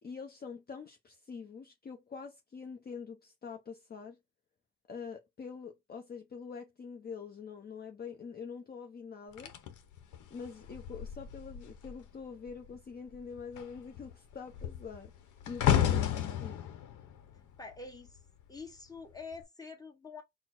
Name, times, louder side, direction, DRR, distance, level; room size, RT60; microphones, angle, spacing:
voice 1, 0.0-4.2 4.9-9.5 10.3-16.0 16.4-16.6, left 5 dB, 30° left, 0.7 m, -45 dB
sound 1, 9.4-12.1 12.4-12.8 13.1-18.4 19.2-19.4, left 10 dB, 80° left, 0.9 m, -33 dB
voice 2, 17.3-18.2 18.5-20.2, left 3 dB, 10° left, 1.3 m, -46 dB
4.2 x 2.1 x 4.5 m
cardioid pair, 90°, 30 cm